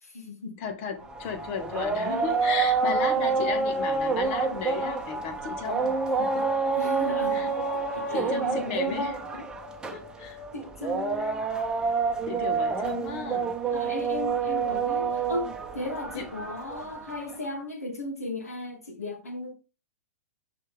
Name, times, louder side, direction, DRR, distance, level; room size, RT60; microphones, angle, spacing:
voice 1, 0.0-0.6 2.8-3.0 6.8-9.0 10.5-11.4 13.7-19.5, left 2 dB, 75° left, 2.6 m, -36 dB
voice 2, 0.6-6.4 7.3-7.5 8.1-9.5 9.9-10.4 12.3-13.6 16.1-16.3, left 6 dB, 45° left, 1.8 m, -34 dB
sound 1, 1.0-17.4, right 4 dB, 10° right, 1.2 m, -28 dB
6.3 x 5.8 x 3.6 m
figure-of-eight pair, 110°, 8 cm